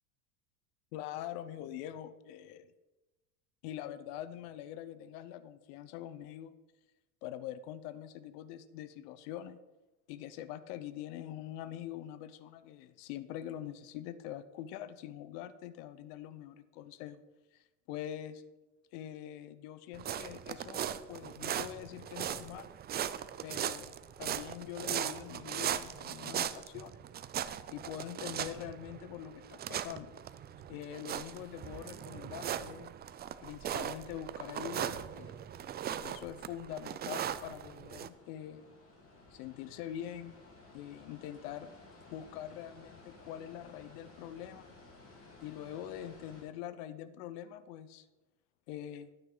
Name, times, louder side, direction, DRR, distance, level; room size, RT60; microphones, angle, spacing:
voice 1, 0.9-2.7 3.6-6.5 7.2-9.6 10.1-17.2 17.5-18.4 18.9-22.7 23.4-23.9 24.2-27.0 27.7-30.1 30.7-32.9 33.4-35.5 36.0-38.7 39.3-40.3 40.7-41.7 42.1-44.7 45.4-48.1 48.7-49.1, left 11 dB, 75° left, 13 dB, 0.9 m, -44 dB
sound 1, 19.9-38.1, right 10 dB, 25° right, 0.3 m, -39 dB
sound 2, 38.1-46.4, left 2 dB, 30° left, 3.6 m, -56 dB
12.0 x 8.9 x 3.9 m, 1.1 s
supercardioid pair, 115°, 46 cm